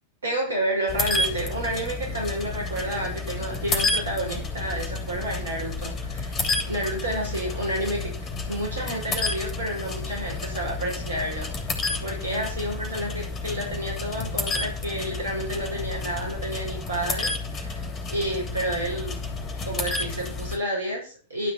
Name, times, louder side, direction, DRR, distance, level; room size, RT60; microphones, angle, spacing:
voice 1, 0.2-6.4 6.6-8.1 8.5-17.8 18.1-19.2 19.6-21.5, right 1 dB, 75° right, -1 dB, 5.9 m, -30 dB
sound 1, 0.9-20.6, left 3 dB, 25° left, 3.1 m, -31 dB
12.0 x 5.9 x 6.1 m, 0.37 s
figure-of-eight pair, 90°, 0 cm